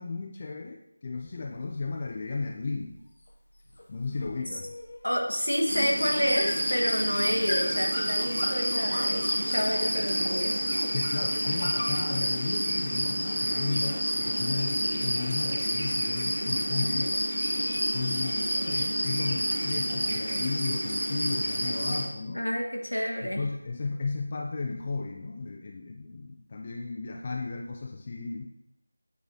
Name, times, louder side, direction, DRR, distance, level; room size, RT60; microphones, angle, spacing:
voice 1, 0.0-3.0 3.9-4.7 10.9-17.2 17.9-22.5 23.2-28.5, left 4 dB, 25° left, 2 dB, 0.4 m, -34 dB
sound 1, 1.2-11.9, left 1 dB, 50° left, 0.9 m, -41 dB
voice 2, 5.0-10.6 22.3-23.5, equal, 85° left, 0 dB, 1.6 m, -29 dB
sound 2, 5.7-22.0, equal, 60° right, 1.9 m, -29 dB
8.5 x 3.9 x 3.0 m, 0.85 s
figure-of-eight pair, 165°, 0 cm